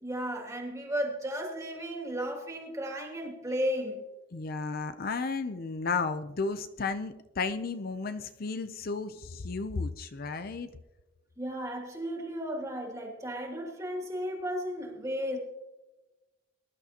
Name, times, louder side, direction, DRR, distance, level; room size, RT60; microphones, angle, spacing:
voice 1, 0.0-4.0 11.4-15.4, equal, 15° right, 0 dB, 2.5 m, -34 dB
voice 2, 4.3-10.7, left 4 dB, 50° left, 10 dB, 0.5 m, -33 dB
21.5 x 11.5 x 2.9 m, 1.1 s
head